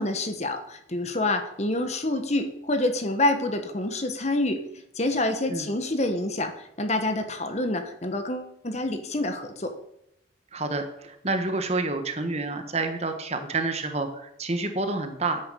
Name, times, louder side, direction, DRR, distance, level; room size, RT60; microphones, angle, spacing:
voice 1, 0.0-4.6 5.0-9.7, left 2 dB, 35° left, 7 dB, 1.2 m, -27 dB
voice 2, 10.5-15.4, right 3 dB, 35° right, 7 dB, 1.4 m, -28 dB
9.9 x 8.7 x 6.8 m, 0.79 s
head